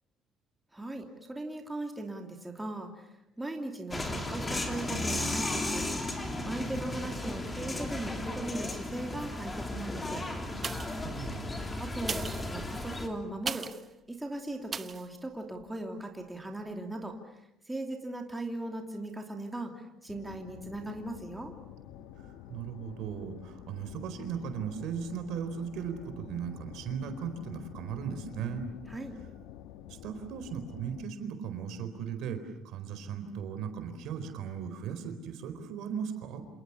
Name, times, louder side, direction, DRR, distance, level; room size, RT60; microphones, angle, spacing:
voice 1, 0.7-3.1 3.4-5.8 6.4-10.3 11.8-13.7 14.1-17.4 17.7-21.5 28.9-29.2, right 1 dB, 10° right, 3 dB, 2.9 m, -38 dB
sound 1, 3.9-13.1, left 2 dB, 15° left, 3.3 m, -35 dB
sound 2, 10.6-11.1 11.9-13.9 14.7-15.1 15.6-15.7, right 5 dB, 25° right, 1.0 m, -38 dB
voice 2, 11.0-11.6 22.5-28.6 29.9-36.5, right 7 dB, 65° right, 8 dB, 4.4 m, -37 dB
sound 3, 20.1-31.1, left 10 dB, 85° left, 1.6 m, -49 dB
29.5 x 27.5 x 7.2 m, 0.83 s
cardioid pair, 135°, 0 cm